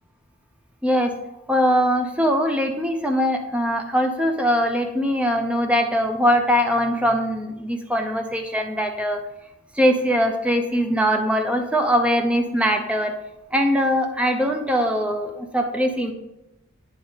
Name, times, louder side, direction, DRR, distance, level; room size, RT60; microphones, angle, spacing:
voice 1, 0.8-1.1 1.5-9.2 9.7-13.1 13.5-16.1, equal, 5° right, 4 dB, 0.5 m, -21 dB
9.0 x 3.7 x 3.9 m, 0.92 s
head